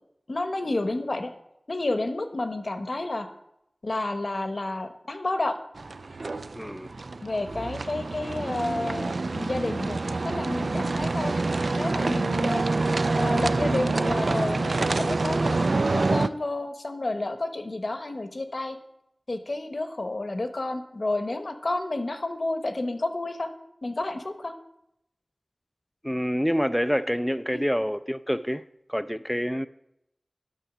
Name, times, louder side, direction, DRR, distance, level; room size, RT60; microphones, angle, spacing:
voice 1, 0.3-1.3 1.7-3.3 3.8-5.6 7.2-11.4 11.7-12.7 13.2-15.6 15.9-18.8 19.3-23.5 23.8-24.5, left 2 dB, 65° left, 0.9 m, -30 dB
sound 1, 5.8-16.3, right 3 dB, 80° right, 0.3 m, -26 dB
voice 2, 6.5-6.9 26.0-28.6 28.9-29.7, equal, 5° left, 0.3 m, -27 dB
9.2 x 6.1 x 6.0 m
wide cardioid pair, 50°, 0 cm